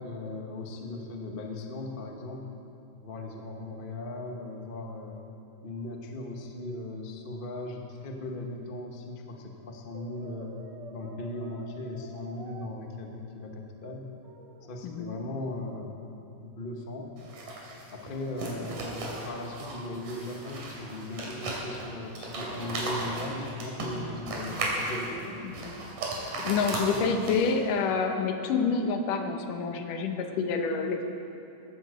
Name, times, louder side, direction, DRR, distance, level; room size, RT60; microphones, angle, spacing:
voice 1, 0.0-2.4 3.0-5.2 5.6-10.6 10.9-14.0 14.7-16.1 16.4-17.1 17.9-25.4, left 2 dB, 70° left, 1 dB, 0.5 m, -38 dB
Brass instrument, 9.9-12.7 14.2-14.8, right 3 dB, 60° right, 1.2 m, -48 dB
voice 2, 14.8-15.1 25.4-25.7 26.4-31.0, left 5 dB, 90° left, 5 dB, 2.7 m, -28 dB
sound 1, 17.2-27.7, right 2 dB, 80° right, 4.2 m, -36 dB
16.5 x 15.0 x 5.1 m, 2.8 s
omnidirectional pair, 3.6 m